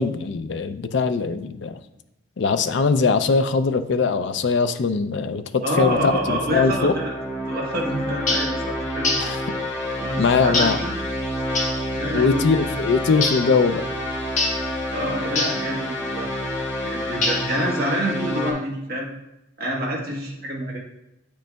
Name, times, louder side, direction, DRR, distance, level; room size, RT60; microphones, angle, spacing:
voice 1, 0.0-1.8 2.4-6.9 9.2-9.5 10.2-10.8 12.1-13.8, left 4 dB, 60° left, 10 dB, 0.4 m, -21 dB
voice 2, 5.6-7.1 7.5-9.1 10.0-11.0 12.0-12.5 14.9-16.3 16.8-19.1 19.6-20.8, equal, 45° right, -2 dB, 1.2 m, -27 dB
sound 1, 5.7-18.5, equal, 15° left, 1.3 m, -29 dB
sound 2, 8.3-8.6 9.0-9.4 10.5-10.9 11.6-11.8 13.2-13.5 14.4-14.7 15.4-15.7 17.2-17.6, left 2 dB, 35° left, 1.1 m, -24 dB
8.6 x 5.1 x 2.3 m, 0.88 s
head